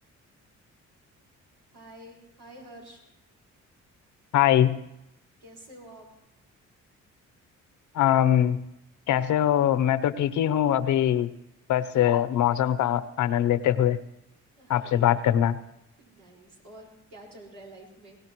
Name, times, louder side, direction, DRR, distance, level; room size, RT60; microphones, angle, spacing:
voice 1, 1.7-3.0 5.4-6.1 14.6-15.1 16.0-18.2, right 1 dB, 90° right, -1 dB, 5.2 m, -48 dB
voice 2, 4.3-4.8 7.9-8.6 9.1-11.3 11.7-14.0 14.7-15.6, left 11 dB, 75° left, 15 dB, 0.8 m, -22 dB
23.0 x 17.0 x 3.1 m, 0.84 s
cardioid pair, 90°, 30 cm